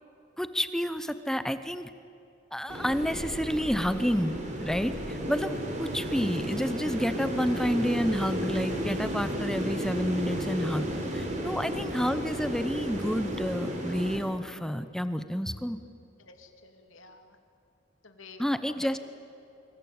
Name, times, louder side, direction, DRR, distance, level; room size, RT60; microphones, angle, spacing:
voice 1, 0.4-1.9 2.5-15.8 18.4-19.0, equal, 5° left, 11 dB, 0.7 m, -30 dB
sound 1, 2.7-14.2, equal, 35° right, 4.0 m, -33 dB
voice 2, 16.2-17.4 18.0-18.4, left 4 dB, 85° left, 5 dB, 2.9 m, -52 dB
26.0 x 24.0 x 8.8 m, 2.7 s
head